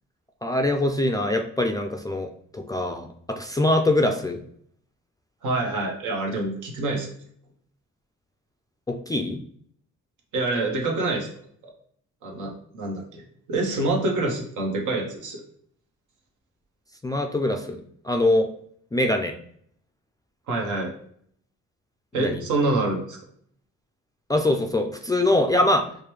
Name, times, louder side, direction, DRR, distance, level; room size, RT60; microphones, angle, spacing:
voice 1, 0.4-4.4 8.9-9.4 17.0-18.5 18.9-19.3 22.2-22.4 24.3-25.9, left 1 dB, 15° left, 4 dB, 0.3 m, -23 dB
voice 2, 5.4-7.1 10.3-11.3 11.6-11.7 12.2-13.2 13.5-15.4 20.5-20.9 22.1-23.2, right 2 dB, 80° right, 1 dB, 1.0 m, -26 dB
4.8 x 2.2 x 3.1 m, 0.64 s
cardioid pair, 90°, 30 cm